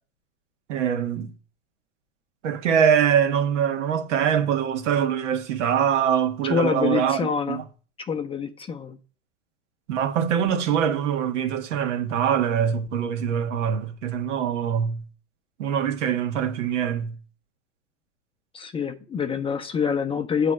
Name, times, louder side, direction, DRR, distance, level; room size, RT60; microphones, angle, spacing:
voice 1, 0.7-1.3 2.4-7.2 7.5-7.6 9.9-15.0 15.6-17.2, right 8 dB, 70° right, 1.4 m, -23 dB
voice 2, 6.4-7.6 8.0-9.0 18.5-20.5, left 6 dB, 15° left, 0.6 m, -26 dB
8.2 x 3.3 x 6.1 m
hypercardioid pair, 115°, 36 cm